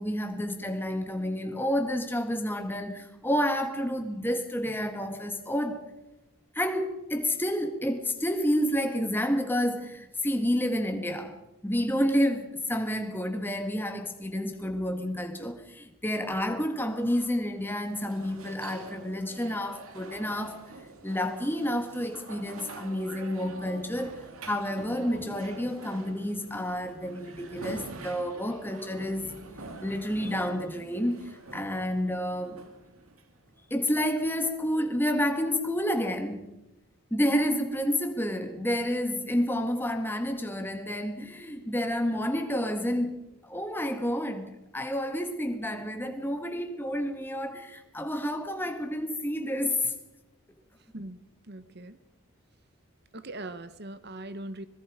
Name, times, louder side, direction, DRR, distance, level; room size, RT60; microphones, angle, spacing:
voice 1, 0.0-5.9 6.5-11.4 11.6-20.6 21.0-29.3 29.8-32.6 33.7-36.5 37.1-49.9, equal, 10° left, 1.8 m, -29 dB
sound 1, 16.6-33.6, right 3 dB, 80° right, 2.3 m, -46 dB
voice 2, 50.9-52.0 53.1-54.7, right 2 dB, 50° right, 1.1 m, -41 dB
25.5 x 21.0 x 5.0 m
head